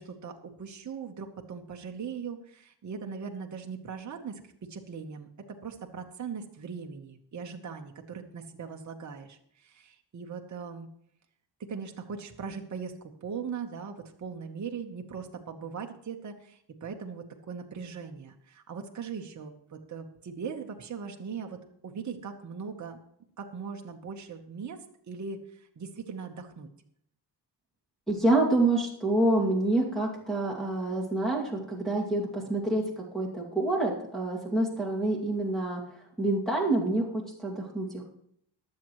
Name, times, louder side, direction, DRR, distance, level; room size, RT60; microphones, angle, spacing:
voice 1, 0.0-4.4 4.7-10.9 11.6-12.9 13.2-21.6 21.8-23.0 23.4-24.8 25.1-26.7, right 6 dB, 40° right, 3 dB, 1.1 m, -40 dB
voice 2, 28.1-35.8 36.2-38.0, right 2 dB, ahead, -5 dB, 2.4 m, -27 dB
22.5 x 7.6 x 3.1 m, 0.70 s
wide cardioid pair, 165°, 43 cm